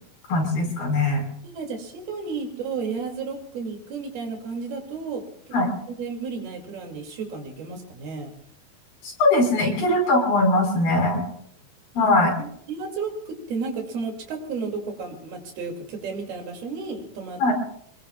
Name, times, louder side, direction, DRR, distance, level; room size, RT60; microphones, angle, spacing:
voice 1, 0.3-1.2 5.5-5.7 9.0-11.2 12.0-12.3 17.4-17.5, left 2 dB, 80° left, 0 dB, 7.2 m, -20 dB
voice 2, 1.4-5.2 5.5-5.6 6.0-8.3 9.8-9.9 12.0-17.4, right 4 dB, 80° right, 2 dB, 4.6 m, -33 dB
27.0 x 21.0 x 2.4 m, 0.67 s
omnidirectional pair, 4.3 m